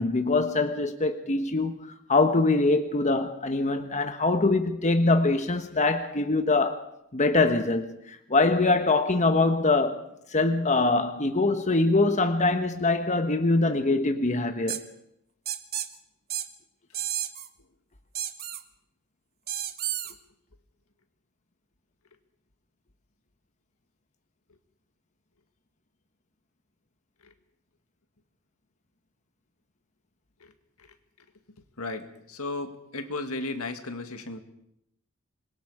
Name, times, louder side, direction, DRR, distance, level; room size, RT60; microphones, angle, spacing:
voice 1, 0.0-14.8, left 3 dB, 35° left, 1.2 m, -24 dB
sound 1, 14.7-14.8 15.5-15.9 16.3-16.5 16.9-17.5 18.1-18.6 19.5-20.1, right 11 dB, 45° right, 1.3 m, -31 dB
voice 2, 31.8-34.4, left 2 dB, 75° left, 2.0 m, -35 dB
25.5 x 22.0 x 5.0 m
head